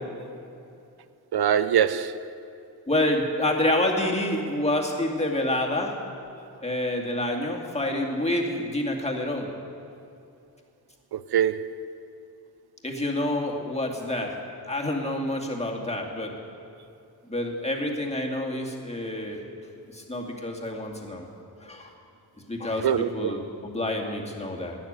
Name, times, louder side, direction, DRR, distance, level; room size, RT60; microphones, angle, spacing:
voice 1, 1.3-2.2 11.1-11.9 22.8-23.4, right 9 dB, 70° right, 0.5 m, -24 dB
voice 2, 2.9-5.9 6.6-9.5 12.8-14.3 14.7-16.3 17.3-19.4 19.9-21.2 21.6-21.9 22.5-24.8, left 1 dB, 15° left, 2.2 m, -28 dB
12.5 x 9.9 x 8.9 m
cardioid pair, 70°, 39 cm